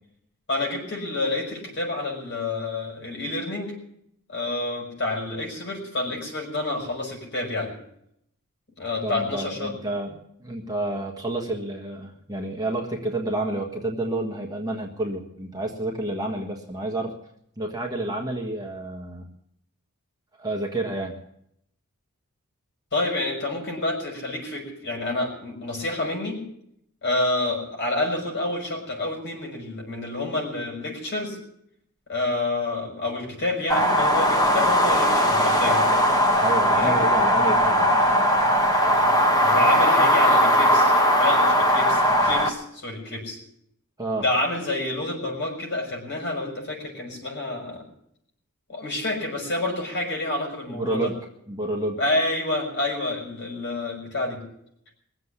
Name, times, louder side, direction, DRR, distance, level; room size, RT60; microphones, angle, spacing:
voice 1, 0.5-3.7 4.3-7.7 8.8-9.7 22.9-26.4 27.0-31.4 32.1-35.8 36.8-37.0 39.4-43.4 44.2-47.9 48.7-51.1 51.9-54.4, left 2 dB, 50° left, 1 dB, 6.0 m, -28 dB
voice 2, 9.0-10.1 10.4-17.1 17.6-19.2 20.4-21.2 36.4-37.9 44.0-44.2 50.7-51.2 51.5-52.0, right 2 dB, 15° right, 1 dB, 1.6 m, -29 dB
sound 1, 33.7-42.5, equal, 15° left, 1.6 m, -19 dB
21.5 x 7.8 x 8.4 m, 0.75 s
head